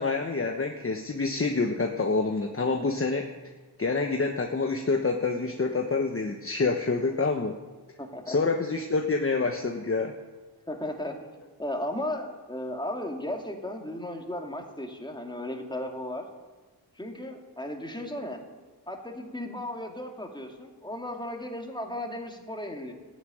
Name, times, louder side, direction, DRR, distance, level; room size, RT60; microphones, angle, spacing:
voice 1, 0.0-3.3 3.8-7.6 8.3-10.1, left 3 dB, 30° left, 3 dB, 1.1 m, -27 dB
voice 2, 8.0-8.4 10.7-11.1 11.6-16.2 17.0-18.4 18.9-22.9, left 1 dB, 10° left, 2 dB, 2.6 m, -35 dB
14.0 x 9.7 x 9.2 m, 1.3 s
wide cardioid pair, 85°, 43 cm